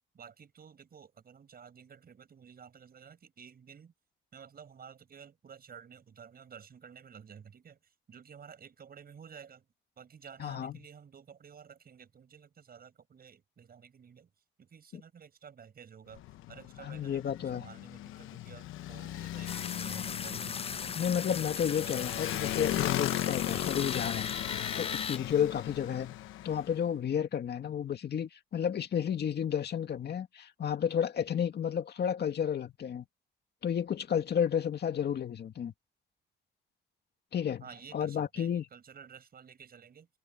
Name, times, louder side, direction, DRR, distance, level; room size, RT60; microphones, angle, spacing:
voice 1, 0.1-3.9 4.3-9.7 10.0-14.3 14.6-16.2 16.5-21.1 37.6-40.1, right 7 dB, 50° right, 6.3 m, -52 dB
voice 2, 10.4-10.7 16.8-17.7 21.0-24.3 24.8-26.2 26.4-33.1 33.6-35.7 37.3-37.6 37.9-38.6, left 8 dB, 55° left, 2.2 m, -32 dB
Motorcycle, 16.1-26.8, left 14 dB, 90° left, 1.0 m, -37 dB
sound 1, 19.5-25.2, left 6 dB, 30° left, 0.5 m, -37 dB
cardioid pair, 90°, 20 cm